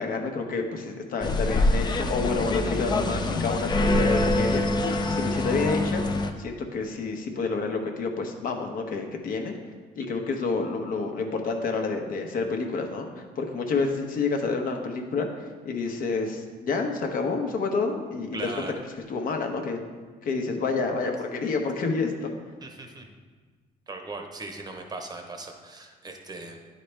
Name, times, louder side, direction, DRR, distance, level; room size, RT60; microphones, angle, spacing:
voice 1, 0.0-6.0 6.4-9.5 10.0-15.3 15.6-18.4 19.1-19.8 20.2-22.4, left 4 dB, 55° left, 3 dB, 0.9 m, -29 dB
sound 1, 1.2-6.3, left 2 dB, 25° left, 0.5 m, -25 dB
voice 2, 18.3-18.7 22.6-23.1 23.9-26.6, right 3 dB, 25° right, 4 dB, 0.8 m, -38 dB
9.9 x 4.2 x 3.3 m, 1.4 s
cardioid pair, 110°, 17 cm